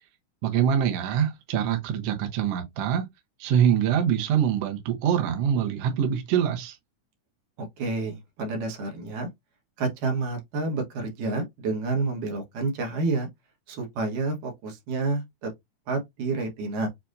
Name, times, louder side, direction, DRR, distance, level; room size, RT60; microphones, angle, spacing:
voice 1, 0.4-3.1 3.4-6.8, right 8 dB, 65° right, 1.7 m, -24 dB
voice 2, 7.6-9.3 9.8-13.3 13.7-15.5 15.9-16.9, right 3 dB, 85° right, 2.9 m, -29 dB
6.9 x 2.6 x 2.5 m
omnidirectional pair, 3.6 m